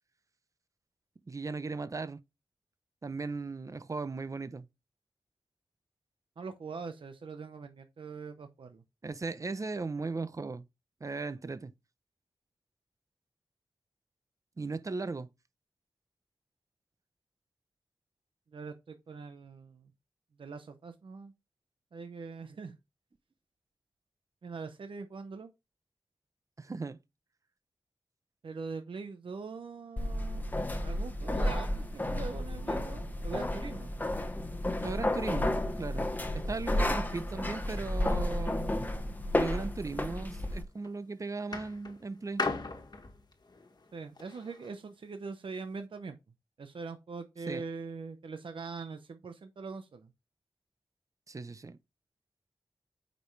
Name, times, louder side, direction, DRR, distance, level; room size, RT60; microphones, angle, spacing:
voice 1, 1.3-2.2 3.0-4.7 9.0-10.6 11.0-11.7 14.6-15.3 26.6-27.0 34.8-38.7 39.3-42.4 47.5-47.6 51.3-51.8, right 3 dB, 40° right, 0.6 m, -37 dB
voice 2, 6.4-8.8 18.5-19.9 20.4-21.3 21.9-22.8 24.4-25.5 28.4-30.6 30.8-33.9 43.9-46.2 46.6-50.1, right 4 dB, 75° right, 0.8 m, -42 dB
sound 1, 30.0-40.6, left 1 dB, 20° left, 1.1 m, -32 dB
sound 2, 40.5-40.9 41.5-44.7 45.6-45.7, left 3 dB, 50° left, 1.4 m, -38 dB
8.6 x 5.3 x 3.2 m
wide cardioid pair, 85°, 9 cm